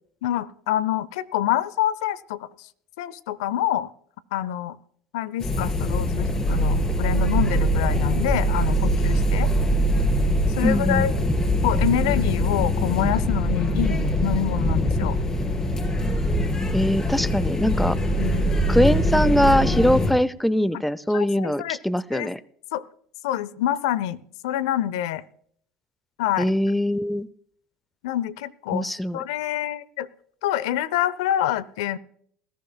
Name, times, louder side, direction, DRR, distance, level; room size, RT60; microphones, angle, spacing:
voice 1, 0.2-2.5 3.0-3.9 4.3-4.8 5.1-9.5 10.6-11.1 11.6-15.2 18.2-18.5 21.1-21.8 22.1-22.3 22.7-22.8 23.2-25.2 26.2-26.5 28.0-30.1 30.4-32.0, left 12 dB, 75° left, 19 dB, 0.6 m, -26 dB
sound 1, 5.4-20.1, equal, 25° left, 3.9 m, -22 dB
voice 2, 10.6-11.1 16.7-18.0 18.7-22.4 26.4-27.3 28.7-29.2, equal, 5° left, 19 dB, 0.5 m, -22 dB
20.5 x 14.0 x 2.3 m, 0.63 s
hypercardioid pair, 80°, 3 cm